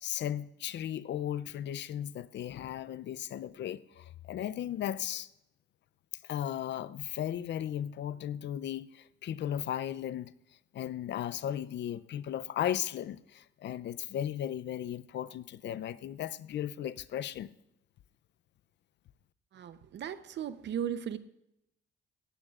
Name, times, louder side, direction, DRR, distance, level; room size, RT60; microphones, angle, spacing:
voice 1, 0.0-5.3 6.3-10.3 10.7-17.5, left 10 dB, 65° left, 0.5 m, -36 dB
voice 2, 19.5-21.2, right 9 dB, 65° right, 0.8 m, -36 dB
17.5 x 15.0 x 2.5 m
cardioid pair, 90°, 20 cm